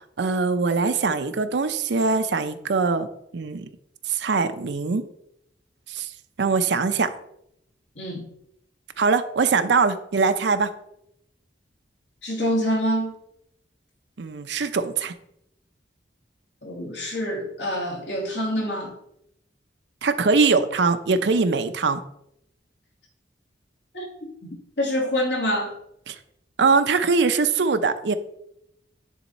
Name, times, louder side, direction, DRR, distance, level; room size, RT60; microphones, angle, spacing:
voice 1, 0.2-3.1 3.3-3.7 4.1-5.0 5.9-6.1 6.4-7.1 9.0-10.7 14.2-15.1 20.0-22.0 26.1-26.2 26.6-28.2, right 4 dB, 75° right, 9 dB, 0.6 m, -22 dB
voice 2, 12.2-13.1 16.6-18.9 23.9-24.1 24.4-25.7, equal, 80° left, -2 dB, 2.4 m, -26 dB
10.0 x 3.5 x 4.1 m, 0.76 s
head